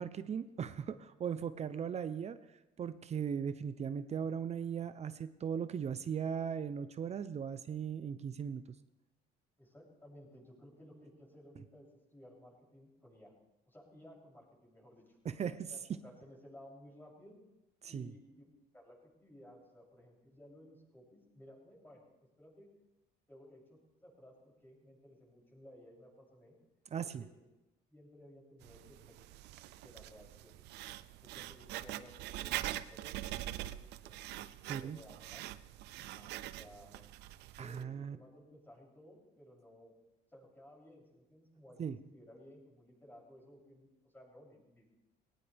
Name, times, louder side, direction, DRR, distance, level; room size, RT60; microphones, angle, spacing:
voice 1, 0.0-2.4 2.8-8.6 15.2-15.7 17.8-18.1 26.9-27.2 34.7-35.0 37.6-38.2 41.8-42.0, right 7 dB, 40° right, 12 dB, 0.8 m, -38 dB
voice 2, 9.6-13.3 13.7-15.2 15.7-17.4 17.9-18.4 18.7-22.7 23.3-26.6 27.2-27.4 27.9-29.1 29.8-30.6 31.1-33.8 34.0-34.2 34.7-35.5 36.0-37.1 37.5-39.9 40.3-44.9, equal, 10° left, -2 dB, 7.6 m, -57 dB
Writing, 28.6-37.8, right 14 dB, 85° right, 0.6 m, -44 dB
20.0 x 18.5 x 3.5 m, 0.99 s
cardioid pair, 110°, 17 cm